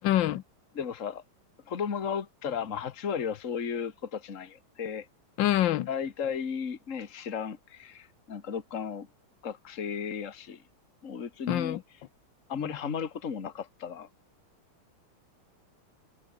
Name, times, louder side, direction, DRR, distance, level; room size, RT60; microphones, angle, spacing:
voice 1, 0.0-0.4 5.4-5.9 11.5-11.8 12.6-12.8, left 13 dB, 65° left, 1.4 m, -26 dB
voice 2, 0.7-1.2 1.7-5.1 5.9-9.1 9.4-10.6 11.0-11.8 12.5-14.1, left 7 dB, 40° left, 2.0 m, -34 dB
omnidirectional pair, 2.3 m